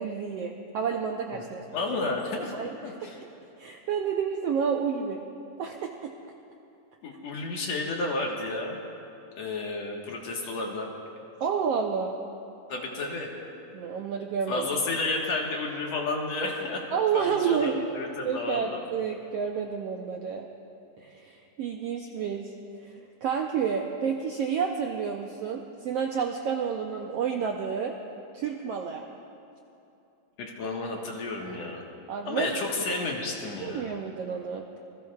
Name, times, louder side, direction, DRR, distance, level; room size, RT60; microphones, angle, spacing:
voice 1, 0.0-1.6 2.5-2.7 3.0-3.1 3.6-5.2 5.6-6.1 11.4-12.2 13.7-14.7 16.9-17.9 18.2-20.5 21.0-22.5 22.8-22.9 23.2-27.9 28.3-29.0 32.1-32.5 33.6-34.8, right 7 dB, 75° right, 2 dB, 1.4 m, -30 dB
voice 2, 1.7-3.2 7.0-8.8 9.4-10.9 12.7-13.3 14.5-16.8 17.1-18.8 30.4-31.8 32.3-33.9, left 3 dB, 60° left, -1 dB, 2.5 m, -31 dB
27.0 x 21.0 x 2.4 m, 2.8 s
omnidirectional pair, 3.7 m